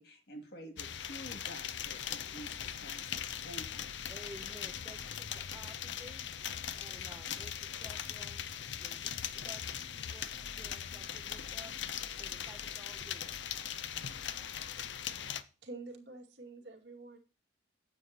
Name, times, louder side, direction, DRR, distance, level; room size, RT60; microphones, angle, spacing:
voice 1, 0.0-3.9, equal, 60° left, 3 dB, 2.2 m, -50 dB
sound 1, 0.8-15.4, left 9 dB, 75° left, 0.6 m, -40 dB
voice 2, 4.1-6.3 6.8-8.4 8.8-11.8 12.2-13.3, right 1 dB, 10° right, 3 dB, 0.7 m, -54 dB
voice 3, 15.6-17.2, right 3 dB, 65° right, 2 dB, 2.2 m, -47 dB
9.6 x 7.7 x 2.9 m, 0.34 s
head